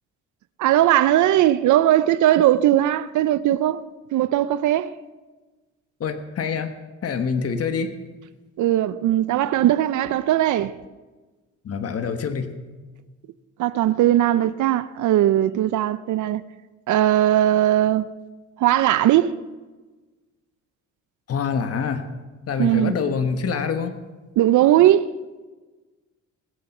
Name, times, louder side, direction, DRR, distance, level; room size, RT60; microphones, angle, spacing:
voice 1, 0.6-3.8 4.1-5.0 8.6-10.7 13.6-16.4 16.9-18.1 18.6-19.3 22.6-22.9 24.4-25.1, right 13 dB, 75° right, 0.6 m, -19 dB
voice 2, 6.0-6.7 7.0-7.9 11.6-12.6 21.3-22.1 22.5-23.9, left 6 dB, 50° left, 1.4 m, -25 dB
20.0 x 8.0 x 6.0 m
cardioid pair, 90°, 30 cm